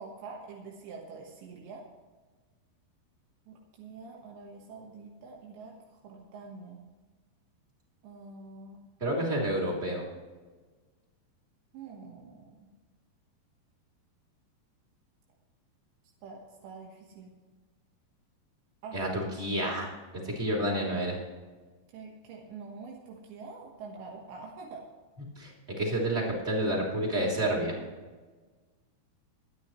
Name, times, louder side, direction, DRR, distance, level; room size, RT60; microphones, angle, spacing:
voice 1, 0.0-1.9 3.5-6.8 8.0-8.8 11.7-12.7 16.2-17.3 18.8-19.1 21.9-24.8, right 4 dB, 80° right, -1 dB, 3.7 m, -46 dB
voice 2, 9.0-10.0 18.9-19.9 20.3-21.2 25.4-25.5 25.8-27.8, right 1 dB, 15° right, -2 dB, 2.6 m, -29 dB
24.5 x 9.3 x 3.2 m, 1.4 s
omnidirectional pair, 5.0 m